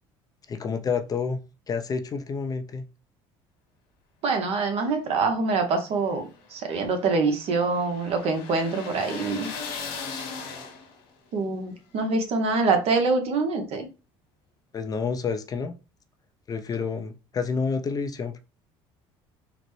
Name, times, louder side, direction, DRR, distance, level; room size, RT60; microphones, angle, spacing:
voice 1, 0.5-1.4 1.7-2.8 14.7-15.8 16.5-18.4, left 5 dB, 30° left, 0.4 m, -29 dB
voice 2, 4.2-9.5 11.3-13.9, right 4 dB, 60° right, 0.9 m, -25 dB
sound 1, 5.6-11.1, left 5 dB, 90° left, 1.1 m, -38 dB
4.0 x 2.1 x 3.1 m
supercardioid pair, 95°, 12 cm